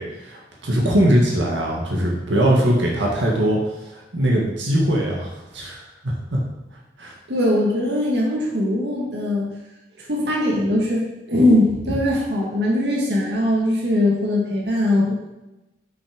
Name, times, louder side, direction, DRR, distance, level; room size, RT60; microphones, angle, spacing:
voice 1, 0.0-3.6 3.8-6.4 7.0-7.1, right 1 dB, 85° right, -3 dB, 1.8 m, -21 dB
voice 2, 7.3-9.5 10.0-15.1, left 1 dB, 65° right, -3 dB, 1.8 m, -20 dB
6.9 x 6.0 x 5.1 m, 1.0 s
head